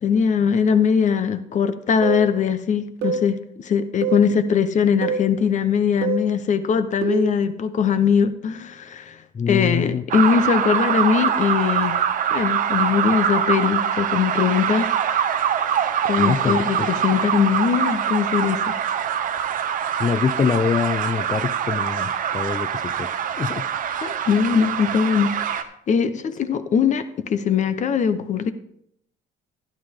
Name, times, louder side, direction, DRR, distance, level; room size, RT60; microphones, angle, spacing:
voice 1, 0.0-9.2 9.5-12.0 12.3-15.0 16.1-18.7 19.4-19.5 23.9-25.6 25.9-28.5, left 7 dB, 45° left, 11 dB, 0.9 m, -21 dB
sound 1, 2.0-2.3 3.0-3.3 4.0-4.3 5.0-5.3 6.0-6.3 7.0-7.3, right 4 dB, 80° right, 1.4 m, -24 dB
voice 2, 9.3-10.0 16.2-16.9 20.0-23.7, left 6 dB, 25° left, 11 dB, 0.4 m, -25 dB
sound 2, 10.1-25.6, right 8 dB, 55° right, 0.9 m, -24 dB
12.0 x 11.0 x 3.6 m, 0.73 s
cardioid pair, 110°, 17 cm